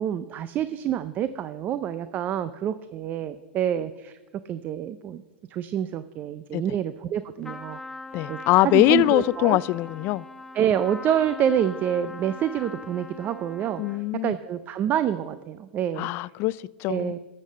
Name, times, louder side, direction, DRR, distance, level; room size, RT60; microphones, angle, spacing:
voice 1, 0.0-4.2 4.5-5.2 5.5-7.8 8.3-9.6 10.5-16.1 16.9-17.2, right 10 dB, 30° right, 0.5 m, -27 dB
Trumpet, 7.4-14.1, left 3 dB, 5° left, 0.9 m, -41 dB
voice 2, 8.1-10.2 13.8-14.4 16.0-17.1, left 18 dB, 40° left, 0.3 m, -22 dB
12.0 x 7.5 x 7.3 m
hypercardioid pair, 130°, 6 cm